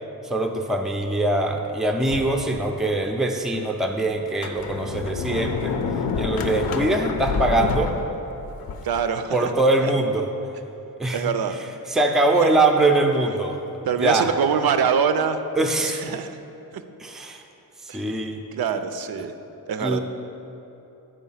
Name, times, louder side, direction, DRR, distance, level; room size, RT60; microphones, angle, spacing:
voice 1, 0.2-5.7 6.2-7.9 9.3-10.3 11.0-11.3 11.9-13.6 14.0-14.3 15.6-16.1 17.0-17.4 17.8-18.4 19.2-19.3 19.8-20.0, right 2 dB, ahead, 4 dB, 0.4 m, -22 dB
Sliding door, 2.1-3.0 3.5-3.6 4.2-9.0, left 5 dB, 70° left, 0.6 m, -28 dB
voice 2, 8.8-9.5 9.8-9.9 11.1-11.7 12.4-12.5 13.8-15.4 15.8-16.3 16.7-16.8 17.9-18.2 18.6-19.3 19.7-20.0, right 7 dB, 75° right, 9 dB, 0.5 m, -24 dB
9.1 x 5.1 x 5.6 m, 3.0 s
wide cardioid pair, 150°, 37 cm